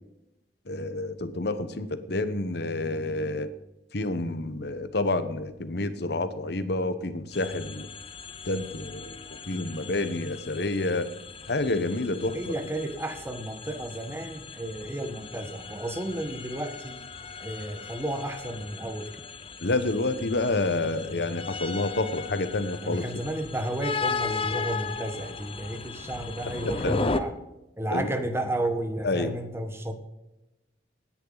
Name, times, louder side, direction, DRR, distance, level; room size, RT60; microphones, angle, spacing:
voice 1, 0.7-3.5 3.9-7.9 8.4-9.2 9.5-11.1 11.5-12.5 19.6-23.1 26.8-27.0 27.9-28.1 29.0-29.4, left 2 dB, 65° left, 11 dB, 1.2 m, -28 dB
sound 1, 7.3-27.2, left 4 dB, 30° left, 0.9 m, -37 dB
voice 2, 12.3-17.0 17.4-19.1 22.8-27.3 27.8-29.9, right 1 dB, 15° right, 8 dB, 1.4 m, -32 dB
18.0 x 10.0 x 4.1 m, 0.97 s
head